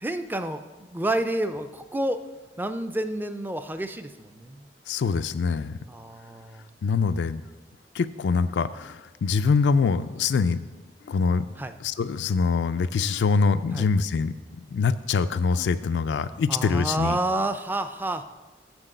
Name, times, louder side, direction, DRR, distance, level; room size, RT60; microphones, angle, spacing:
voice 1, 0.0-2.2 2.6-4.6 5.9-6.7 11.6-11.7 13.7-13.9 16.5-18.2, right 1 dB, 10° right, 9 dB, 0.3 m, -29 dB
voice 2, 4.9-5.7 6.8-7.4 7.9-10.8 11.1-11.5 11.8-14.3 14.7-17.2, left 5 dB, 90° left, 11 dB, 0.4 m, -24 dB
7.0 x 6.1 x 6.6 m, 1.2 s
head